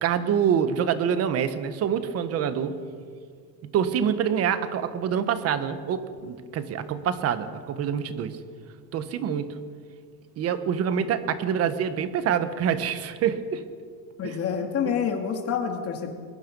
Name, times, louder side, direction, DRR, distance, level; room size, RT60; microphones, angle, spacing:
voice 1, 0.0-2.8 3.6-8.4 8.9-9.5 10.4-13.6 14.2-14.4 14.8-14.9, right 8 dB, 30° right, 11 dB, 1.2 m, -26 dB
voice 2, 14.2-16.1, left 7 dB, 30° left, 4 dB, 2.3 m, -27 dB
22.5 x 21.5 x 5.4 m, 2.1 s
cardioid pair, 165°, 48 cm